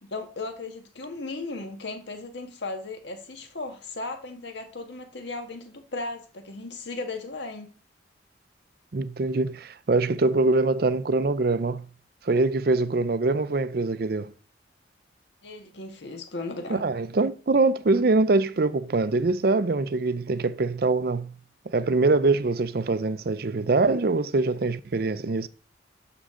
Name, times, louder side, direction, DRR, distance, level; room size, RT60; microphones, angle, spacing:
voice 1, 0.0-7.7 15.4-16.9, left 3 dB, 65° left, 1.6 m, -36 dB
voice 2, 8.9-11.9 12.2-14.3 16.7-21.4 21.7-25.5, right 3 dB, 50° right, 0.5 m, -23 dB
11.5 x 6.2 x 3.8 m
head